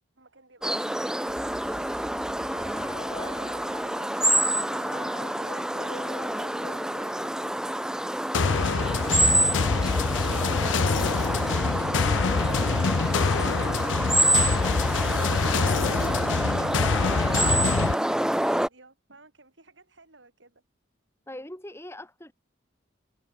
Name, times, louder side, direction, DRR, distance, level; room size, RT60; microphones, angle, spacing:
sound 1, 0.6-18.7, right 1 dB, 5° right, 0.6 m, -27 dB
sound 2, 1.3-7.9 8.1-8.9 9.2-11.3, left 3 dB, 30° left, 1.3 m, -45 dB
sound 3, 8.3-17.9, left 4 dB, 85° left, 0.6 m, -25 dB
voice 1, 13.9-20.6, right 3 dB, 80° right, 7.8 m, -53 dB
voice 2, 21.3-22.3, left 1 dB, 15° left, 7.5 m, -41 dB
head